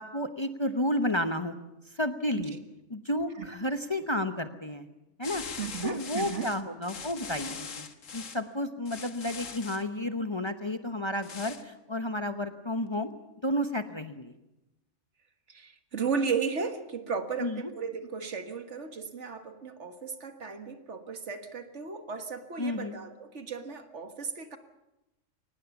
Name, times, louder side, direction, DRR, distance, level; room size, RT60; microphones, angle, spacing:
voice 1, 0.0-1.5 1.9-2.5 2.9-4.9 5.2-5.4 5.8-7.9 8.1-13.1 13.4-14.3 17.4-17.6 22.6-22.9, left 1 dB, 25° left, 8 dB, 0.9 m, -31 dB
sound 1, 5.2-8.4 8.8-9.8 11.2-11.6, left 6 dB, 85° left, 1.7 m, -41 dB
voice 2, 5.5-6.5 15.5-24.6, right 5 dB, 65° right, 8 dB, 1.9 m, -35 dB
23.5 x 19.0 x 7.2 m, 0.94 s
omnidirectional pair, 1.3 m